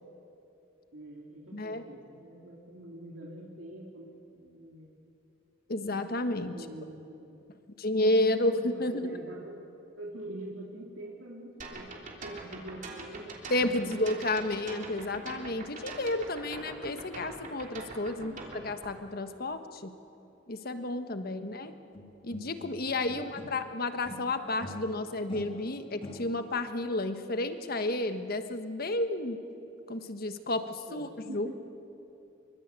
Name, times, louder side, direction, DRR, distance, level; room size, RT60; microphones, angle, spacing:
voice 1, 0.9-4.9 6.5-7.4 8.5-9.5 10.0-13.3 13.7-14.1 18.1-18.5 21.2-21.8 23.1-23.3 30.4-31.6, right 1 dB, 85° right, -2 dB, 2.8 m, -45 dB
voice 2, 1.5-1.8 5.7-6.6 7.8-9.1 13.5-19.9 20.5-21.7 22.2-29.4 29.9-30.6 30.9-31.5, left 2 dB, 50° left, 8 dB, 1.4 m, -31 dB
sound 1, 11.6-18.9, right 3 dB, 40° right, 3.3 m, -43 dB
Guitar Fail, 21.9-23.7 24.0-26.6, left 1 dB, 25° left, 2.2 m, -45 dB
25.5 x 24.0 x 8.3 m, 2.8 s
head